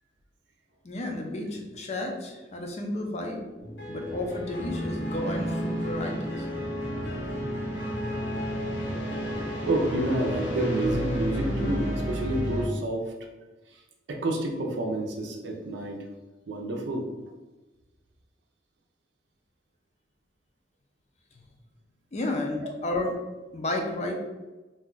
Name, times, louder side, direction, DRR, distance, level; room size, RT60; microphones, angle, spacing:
voice 1, 0.8-3.5 3.9-6.5 22.1-23.2 23.5-24.1, left 1 dB, 35° left, 2 dB, 0.5 m, -32 dB
sound 1, 3.6-12.7, equal, 75° left, 1.0 m, -31 dB
voice 2, 9.7-13.1 14.1-16.0 16.5-17.1, right 1 dB, 75° right, 1 dB, 0.5 m, -29 dB
2.6 x 2.2 x 3.8 m, 1.2 s
head